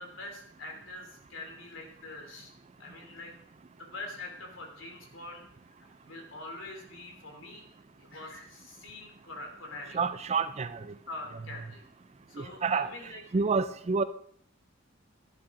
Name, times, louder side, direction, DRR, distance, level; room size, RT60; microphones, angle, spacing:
voice 1, 0.0-2.5 2.8-3.3 3.8-5.4 5.8-7.6 8.0-10.0 11.1-11.8 12.3-13.2, left 2 dB, 70° left, 2 dB, 2.8 m, -44 dB
voice 2, 9.9-10.9 12.4-14.0, right 5 dB, 30° right, 13 dB, 0.4 m, -29 dB
11.5 x 11.5 x 3.7 m, 0.66 s
head